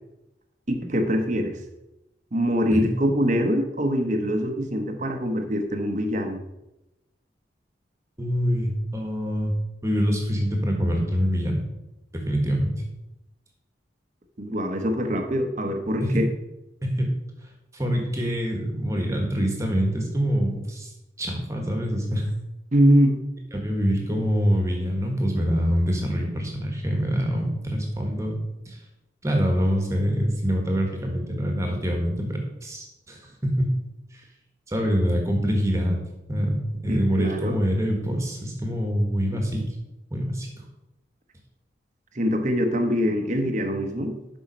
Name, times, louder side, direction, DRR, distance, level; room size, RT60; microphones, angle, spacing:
voice 1, 0.7-1.6 2.3-6.4 14.4-16.3 22.7-23.2 36.9-37.6 42.1-44.2, equal, 40° right, 5 dB, 1.0 m, -23 dB
voice 2, 8.2-9.5 9.8-11.6 12.1-12.7 16.0-16.2 16.8-17.1 17.7-20.9 21.2-22.3 23.5-28.4 28.6-28.8 29.2-33.7 34.1-34.2 34.7-36.0 36.3-39.6 40.1-40.6, equal, 15° right, 1 dB, 1.5 m, -25 dB
7.3 x 5.6 x 5.3 m, 0.94 s
head